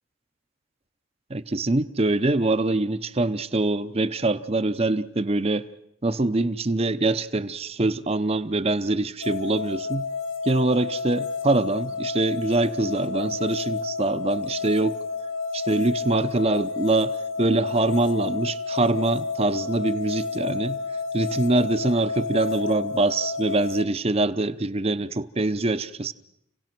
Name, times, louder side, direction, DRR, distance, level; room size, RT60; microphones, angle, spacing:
voice 1, 1.3-5.7 6.0-10.1 10.4-15.0 15.5-20.8 21.1-26.1, right 2 dB, 30° right, 0.7 m, -24 dB
sound 1, 9.2-23.8, left 4 dB, 75° left, 0.8 m, -31 dB
28.5 x 17.5 x 6.0 m
head